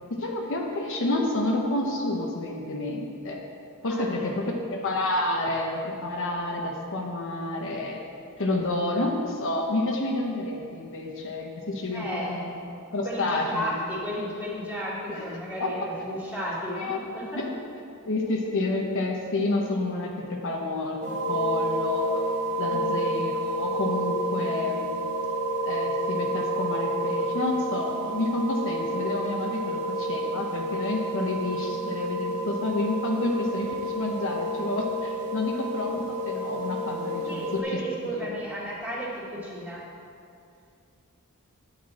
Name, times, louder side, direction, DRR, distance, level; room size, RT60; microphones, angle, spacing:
voice 1, 0.1-3.4 3.8-8.0 8.4-12.6 12.9-13.7 15.1-15.2 15.6-15.7 16.8-17.0 17.3-17.5 18.1-22.2 22.6-24.9 25.6-37.6 38.1-38.3, left 2 dB, 65° left, 1 dB, 0.9 m, -29 dB
voice 2, 3.8-4.7 8.6-8.9 11.9-12.4 13.0-17.4 22.6-23.0 37.1-39.9, equal, 10° right, -7 dB, 2.4 m, -34 dB
sound 1, 21.0-37.6, right 1 dB, 35° right, 2.0 m, -30 dB
9.1 x 8.8 x 4.2 m, 2.5 s
head